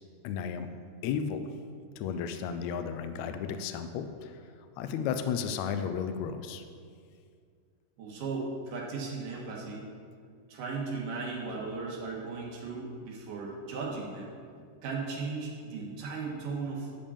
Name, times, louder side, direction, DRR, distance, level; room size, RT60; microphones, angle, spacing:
voice 1, 0.2-0.7 1.0-1.5 2.0-4.3 4.8-6.6, left 7 dB, 80° left, 8 dB, 1.7 m, -33 dB
voice 2, 8.0-9.9 10.5-14.3 14.8-16.9, right 4 dB, 85° right, -2 dB, 2.9 m, -36 dB
10.5 x 5.1 x 7.0 m, 2.2 s
omnidirectional pair, 3.6 m